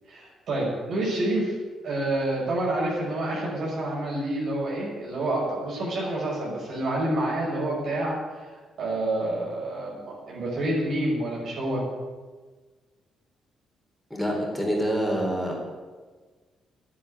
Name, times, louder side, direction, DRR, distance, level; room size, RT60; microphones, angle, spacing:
voice 1, 0.1-1.6 1.8-11.8, right 1 dB, 60° right, -4 dB, 5.7 m, -28 dB
voice 2, 14.1-15.5, equal, ahead, -1 dB, 4.1 m, -26 dB
10.5 x 9.6 x 9.8 m, 1.4 s
cardioid pair, 90°, 0 cm